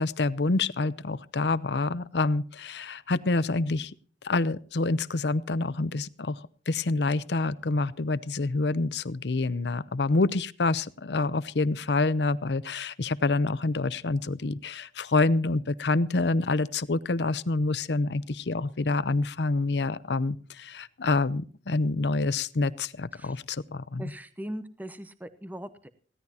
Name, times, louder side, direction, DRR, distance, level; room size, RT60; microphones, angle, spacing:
voice 1, 0.0-3.9 4.2-6.4 6.7-24.1, left 3 dB, 75° left, 17 dB, 0.7 m, -27 dB
voice 2, 24.0-25.9, right 1 dB, 10° right, 11 dB, 0.8 m, -39 dB
20.0 x 16.5 x 2.9 m, 0.41 s
head